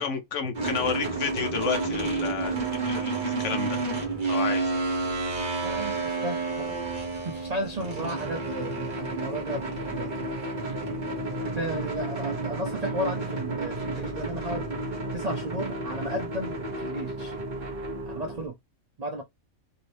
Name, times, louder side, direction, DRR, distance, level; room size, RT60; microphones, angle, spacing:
voice 1, 0.0-3.8 4.3-4.7, left 6 dB, 65° left, 1.0 m, -31 dB
sound 1, 0.6-18.5, right 2 dB, 35° right, 1.2 m, -31 dB
voice 2, 5.6-10.1 11.5-14.7 15.1-17.3 18.1-18.6 19.0-19.2, right 1 dB, 80° right, 0.3 m, -34 dB
2.8 x 2.7 x 3.2 m
omnidirectional pair, 1.4 m